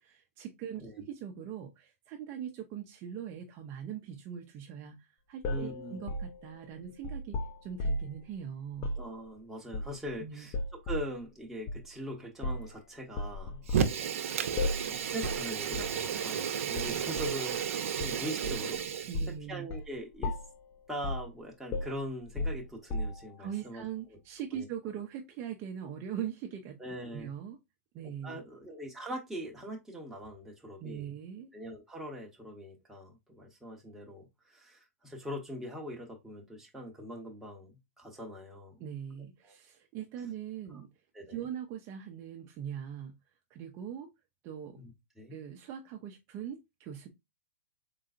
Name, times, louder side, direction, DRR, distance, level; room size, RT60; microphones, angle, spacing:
voice 1, 0.0-8.9 10.2-10.5 19.1-19.7 23.4-26.8 27.0-27.6 27.9-28.4 30.8-31.5 38.8-40.9 41.3-43.1 43.5-44.1 44.4-44.8 45.3-47.1, right 9 dB, 35° right, 0.7 m, -41 dB
sound 1, 5.4-8.2 8.7-9.1 9.7-10.2 10.5-11.1 11.7-11.8 12.4-12.7 13.2-14.0 14.6-14.9 15.2-15.5 15.7-16.0 16.8-17.4 18.0-18.7 19.1-19.4 19.7-19.9 20.2-20.6 21.0-21.3 21.7-23.4, left 1 dB, 30° left, 0.6 m, -35 dB
voice 2, 5.5-6.0 9.0-10.5 10.8-14.1 14.8-19.1 19.5-20.3 20.9-23.8 24.5-24.7 26.8-27.3 28.2-31.1 31.5-38.8 39.4-39.5 41.1-41.4 44.7-45.4, equal, 5° right, 1.2 m, -42 dB
Fire, 13.7-19.3, right 7 dB, 70° right, 0.7 m, -33 dB
3.9 x 3.8 x 2.5 m
hypercardioid pair, 135°, 8 cm